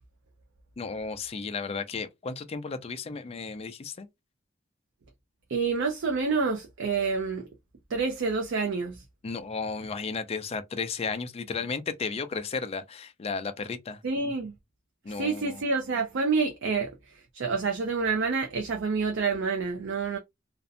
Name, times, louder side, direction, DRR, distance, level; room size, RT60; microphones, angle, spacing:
voice 1, 0.8-4.1 9.2-14.0 15.0-15.6, left 4 dB, 30° left, 0.4 m, -34 dB
voice 2, 5.5-7.5 7.9-9.0 14.0-14.5 15.2-16.9 17.3-20.2, right 4 dB, 65° right, 0.5 m, -28 dB
2.6 x 2.1 x 2.5 m
head